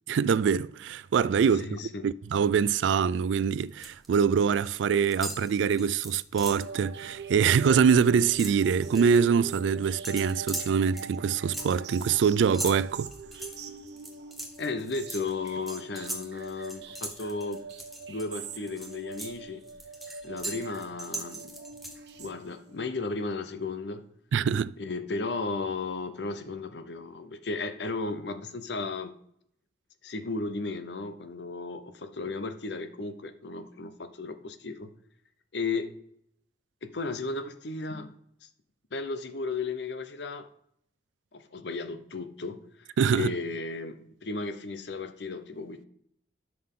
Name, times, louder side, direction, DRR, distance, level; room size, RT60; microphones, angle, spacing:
voice 1, 0.1-1.8 2.0-13.1 24.3-24.7 43.0-43.3, right 6 dB, 85° right, 0.3 m, -24 dB
voice 2, 1.5-2.1 14.6-17.6 18.1-19.7 20.2-21.5 22.2-24.1 24.8-29.1 30.0-34.9 35.5-36.0 36.8-38.1 38.4-38.5 38.9-40.5 41.3-45.9, left 3 dB, 70° left, 0.8 m, -35 dB
sound 1, 3.4-4.1 4.3-4.8 5.1-6.7 7.1-7.3 7.6-9.2 10.0-18.3 18.7-22.3, right 1 dB, ahead, 1.0 m, -40 dB
sound 2, 6.4-22.9, right 5 dB, 70° right, 0.9 m, -43 dB
11.0 x 6.1 x 3.7 m
head